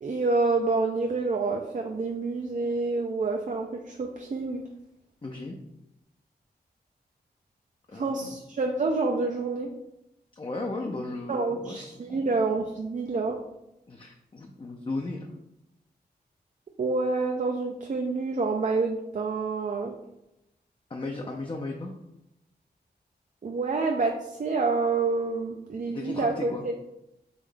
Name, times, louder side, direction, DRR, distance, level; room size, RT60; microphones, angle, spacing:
voice 1, 0.0-4.7 7.9-9.7 11.3-13.4 16.8-20.0 23.4-26.7, right 3 dB, 45° right, 2 dB, 0.5 m, -28 dB
voice 2, 5.2-5.6 7.9-8.3 10.4-12.3 13.9-15.3 20.9-21.9 25.9-26.6, left 2 dB, 30° left, 1 dB, 0.5 m, -36 dB
3.8 x 3.1 x 3.3 m, 0.87 s
cardioid pair, 65°, 17 cm